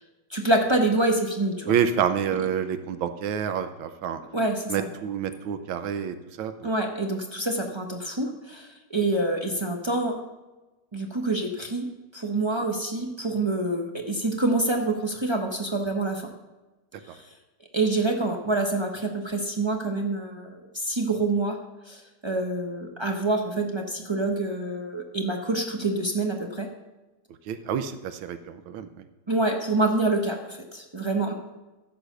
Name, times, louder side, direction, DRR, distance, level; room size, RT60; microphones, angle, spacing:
voice 1, 0.3-1.7 4.3-4.9 6.6-10.2 10.9-11.9 12.1-16.2 17.0-17.3 17.7-21.6 21.9-26.7 29.3-31.3, right 2 dB, 35° right, 2 dB, 0.4 m, -26 dB
voice 2, 1.7-4.2 4.7-6.7 27.5-29.0, right 8 dB, 75° right, 10 dB, 1.5 m, -28 dB
14.5 x 5.1 x 6.5 m, 1.1 s
omnidirectional pair, 2.3 m